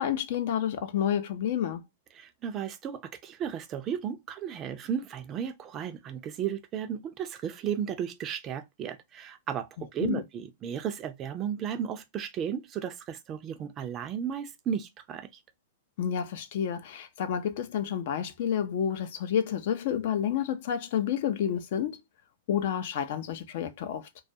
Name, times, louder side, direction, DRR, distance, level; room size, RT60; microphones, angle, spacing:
voice 1, 0.0-1.8 10.0-10.2 16.0-22.0 22.5-24.1, left 9 dB, 60° left, 0.5 m, -29 dB
voice 2, 2.2-15.3, right 8 dB, 30° right, 0.4 m, -34 dB
2.3 x 2.2 x 2.6 m
hypercardioid pair, 120°, 0 cm